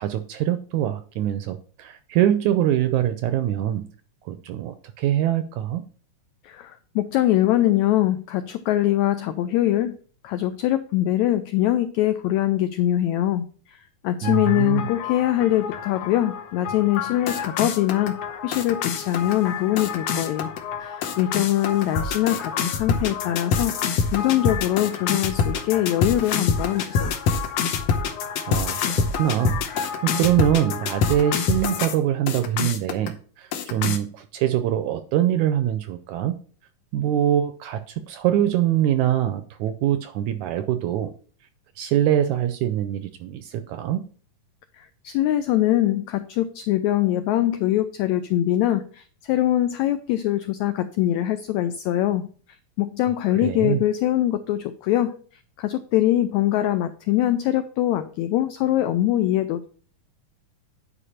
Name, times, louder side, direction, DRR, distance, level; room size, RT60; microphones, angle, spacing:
voice 1, 0.0-3.9 4.3-5.8 14.2-14.9 28.5-36.4 36.9-41.1 41.8-44.0 53.4-53.8, right 11 dB, 80° right, 9 dB, 1.8 m, -24 dB
voice 2, 6.4-10.0 10.2-13.8 14.0-20.5 20.8-22.5 22.8-23.7 24.1-27.2 44.8-52.3 52.8-55.2 55.6-59.6, left 13 dB, 90° left, 11 dB, 1.6 m, -23 dB
sound 1, 14.2-32.0 32.3-33.1 33.5-34.0, left 6 dB, 70° left, 1.6 m, -27 dB
10.0 x 5.0 x 4.3 m, 0.43 s
omnidirectional pair, 3.8 m